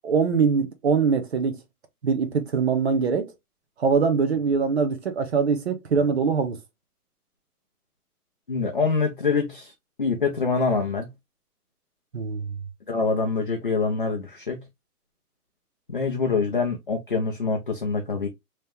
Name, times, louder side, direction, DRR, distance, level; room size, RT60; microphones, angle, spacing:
voice 1, 0.0-1.6 2.0-3.3 3.8-6.6 12.1-12.5, right 5 dB, 45° right, 0.8 m, -23 dB
voice 2, 8.5-9.7 10.0-11.1 12.9-14.6 15.9-18.3, left 4 dB, 35° left, 0.4 m, -25 dB
3.2 x 2.9 x 3.3 m
hypercardioid pair, 165°, 46 cm